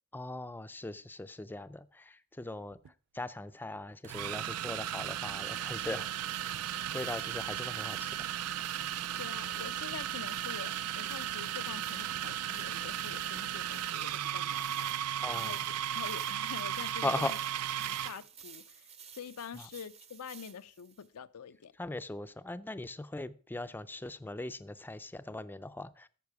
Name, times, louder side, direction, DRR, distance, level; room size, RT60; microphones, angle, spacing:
voice 1, 0.1-2.8 3.1-6.1 6.9-8.3 15.2-15.6 17.0-17.3 17.8-18.0 19.5-19.7 21.8-26.1, left 2 dB, 10° left, 0.4 m, -39 dB
sound 1, 2.7-2.9 4.0-18.2, right 11 dB, 85° right, 0.4 m, -35 dB
sound 2, 6.2-21.1, right 7 dB, 30° right, 0.7 m, -54 dB
voice 2, 9.2-15.0 15.3-15.7 15.9-17.4 17.8-21.7, left 7 dB, 90° left, 0.5 m, -46 dB
12.0 x 7.4 x 4.7 m
head